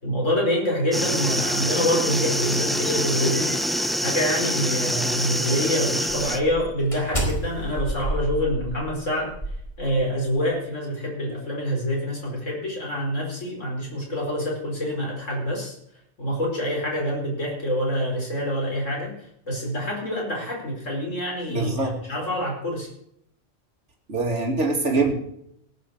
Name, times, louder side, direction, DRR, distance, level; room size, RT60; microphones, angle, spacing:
voice 1, 0.0-3.5 4.0-9.3 9.8-15.8 16.2-19.1 19.5-22.9, equal, 85° left, -1 dB, 5.2 m, -26 dB
sound 1, 0.9-6.4, equal, ahead, 0.8 m, -25 dB
sound 2, 2.4-4.9 5.4-5.7 6.1-10.3, right 1 dB, 25° left, 4.7 m, -33 dB
voice 2, 21.5-22.0 24.1-25.2, right 3 dB, 70° right, 1 dB, 3.1 m, -23 dB
18.5 x 9.3 x 6.3 m, 0.73 s
omnidirectional pair, 1.3 m